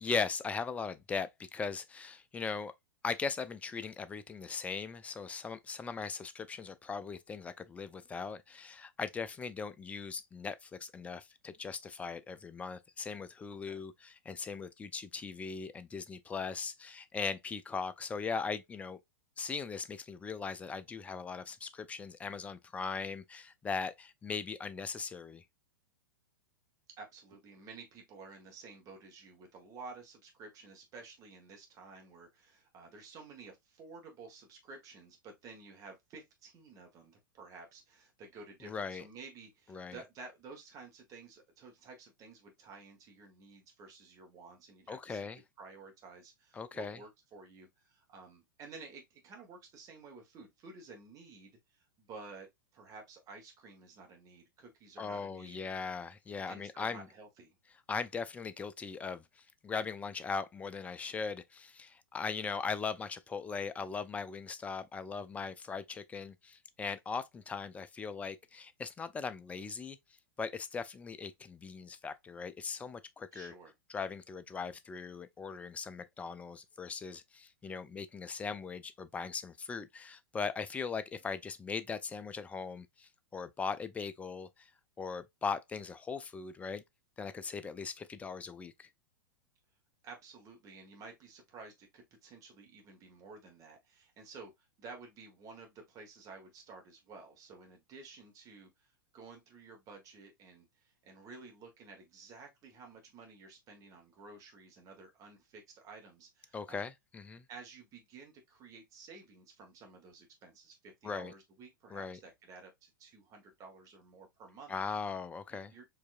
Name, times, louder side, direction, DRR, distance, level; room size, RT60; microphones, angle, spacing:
voice 1, 0.0-2.7 3.0-19.0 19.4-25.4 38.6-39.0 39.7-40.0 44.9-45.4 46.5-47.0 55.0-57.1 57.9-70.0 70.4-73.5 73.9-84.7 85.0-86.8 87.2-88.9 106.5-107.5 111.0-111.3 111.9-112.2 114.7-115.7, left 5 dB, 10° left, 0.4 m, -39 dB
voice 2, 27.0-45.3 45.6-52.5 52.7-55.6 56.5-57.5 73.3-73.7 90.0-106.9 107.5-114.7 115.7-115.8, right 4 dB, 30° right, 1.3 m, -52 dB
4.6 x 2.8 x 2.4 m
figure-of-eight pair, 100°, 11 cm